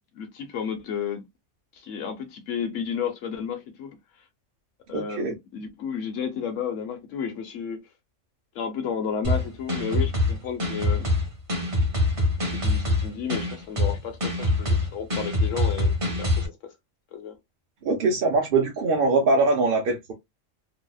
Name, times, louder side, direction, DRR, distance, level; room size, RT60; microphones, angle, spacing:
voice 1, 0.1-1.2 1.7-4.0 4.9-7.8 8.5-11.1 12.5-16.7 17.1-17.4, left 7 dB, 80° left, 1.0 m, -32 dB
voice 2, 4.9-5.3 17.8-20.1, right 3 dB, 55° right, 0.7 m, -22 dB
sound 1, 9.2-16.5, left 2 dB, 30° right, 0.9 m, -24 dB
2.7 x 2.0 x 2.2 m
omnidirectional pair, 1.3 m